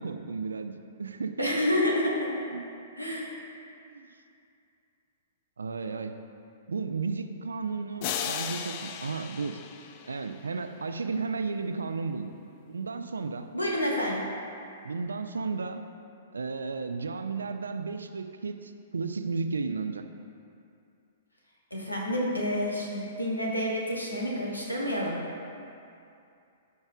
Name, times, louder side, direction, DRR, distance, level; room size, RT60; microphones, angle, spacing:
voice 1, 0.0-1.6 2.5-2.6 3.8-4.1 5.6-6.2 6.7-9.6 10.1-12.3 12.7-13.5 14.8-15.8 16.3-20.0, right 4 dB, 70° right, 8 dB, 0.4 m, -33 dB
voice 2, 1.4-2.3 3.0-3.3 13.5-14.2 21.7-25.2, left 1 dB, 85° left, -3 dB, 1.4 m, -29 dB
sound 1, 8.0-10.7, left 8 dB, 40° left, 0.4 m, -36 dB
14.0 x 5.3 x 2.4 m, 2.6 s
figure-of-eight pair, 110°, 0 cm